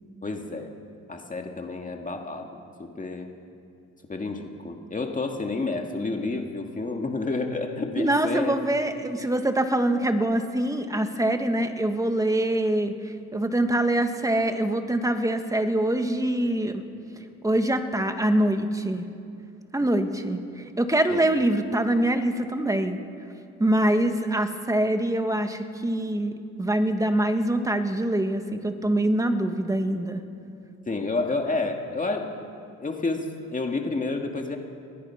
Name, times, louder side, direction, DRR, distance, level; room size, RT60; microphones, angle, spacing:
voice 1, 0.2-0.7 1.1-2.5 2.8-3.3 4.1-8.5 21.1-21.3 30.9-32.3 32.8-34.6, left 3 dB, 25° left, 2 dB, 2.0 m, -30 dB
voice 2, 8.0-16.8 17.4-19.0 19.7-20.4 20.8-23.0 23.6-30.2, right 1 dB, 10° right, 7 dB, 1.8 m, -24 dB
24.0 x 20.0 x 5.9 m, 2.5 s
cardioid pair, 90°, 30 cm